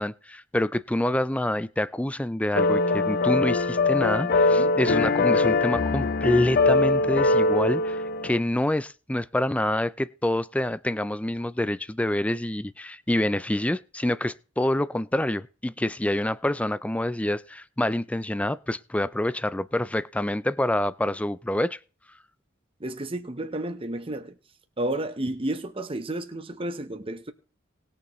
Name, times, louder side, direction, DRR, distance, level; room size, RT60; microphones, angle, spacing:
voice 1, 0.0-21.8, left 1 dB, 5° left, 0.4 m, -27 dB
sound 1, 2.6-8.4, left 3 dB, 50° left, 0.6 m, -22 dB
voice 2, 22.8-24.3 24.8-27.3, right 1 dB, 30° right, 1.0 m, -31 dB
20.0 x 6.8 x 3.1 m
head